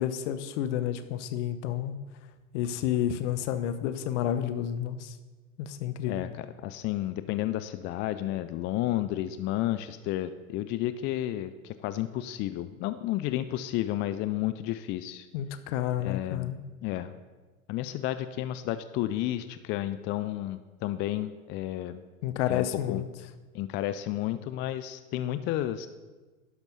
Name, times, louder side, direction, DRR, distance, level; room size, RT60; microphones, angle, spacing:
voice 1, 0.0-2.0 2.5-5.2 5.6-6.3 15.3-16.6 22.2-23.1, left 11 dB, 60° left, 11 dB, 0.9 m, -30 dB
voice 2, 6.1-15.3 16.0-16.5 16.8-17.1 17.7-22.0 22.5-23.0 23.5-25.9, left 14 dB, 30° left, 12 dB, 0.4 m, -32 dB
11.0 x 6.0 x 5.4 m, 1.3 s
hypercardioid pair, 90°, 41 cm